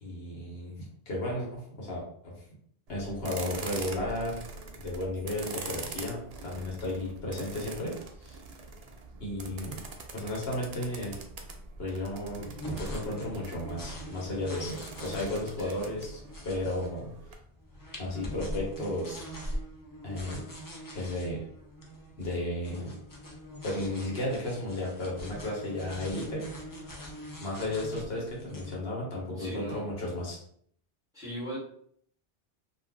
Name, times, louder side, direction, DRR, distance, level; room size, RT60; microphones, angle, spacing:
voice 1, 0.0-0.7 1.1-2.3 2.9-4.4 4.8-7.9 8.2-8.4 9.2-9.8 10.1-11.2 11.8-16.1 16.4-17.1 18.0-19.2 20.0-20.5 20.9-21.4 22.2-22.9 23.6-26.4 27.4-30.4, left 1 dB, 65° left, -3 dB, 1.1 m, -34 dB
sound 1, 2.9-17.3, right 3 dB, 60° right, 0.4 m, -44 dB
sound 2, 12.3-28.8, equal, 35° left, 0.3 m, -42 dB
voice 2, 29.4-29.9 31.1-31.6, equal, 5° right, -8 dB, 1.1 m, -38 dB
2.5 x 2.3 x 3.4 m, 0.65 s
omnidirectional pair, 1.1 m